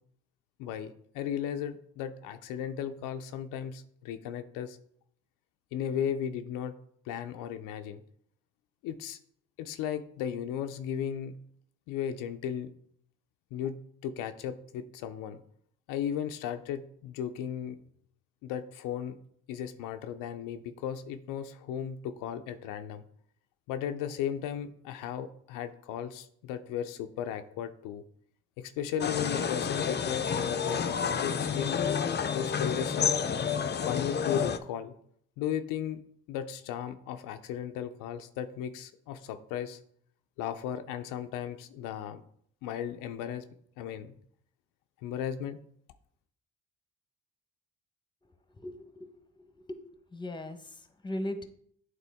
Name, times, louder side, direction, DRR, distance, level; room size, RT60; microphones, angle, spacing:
voice 1, 0.6-4.8 5.7-6.7 7.1-8.0 8.8-9.2 9.6-11.4 11.9-12.7 13.5-15.4 15.9-17.8 18.4-19.2 19.5-23.0 23.7-28.0 28.6-31.9 32.3-33.2 33.8-35.0 35.4-36.0 36.3-39.8 40.4-42.2 42.6-43.4 43.8-44.1 45.0-45.6, left 9 dB, 90° left, 9 dB, 0.5 m, -35 dB
sound 1, 29.0-34.6, left 7 dB, 35° left, 0.5 m, -30 dB
voice 2, 48.6-49.1 49.6-49.8 50.1-50.8 51.0-51.5, left 1 dB, 15° left, 8 dB, 0.9 m, -37 dB
8.3 x 3.7 x 3.5 m, 0.64 s
supercardioid pair, 65°, 31 cm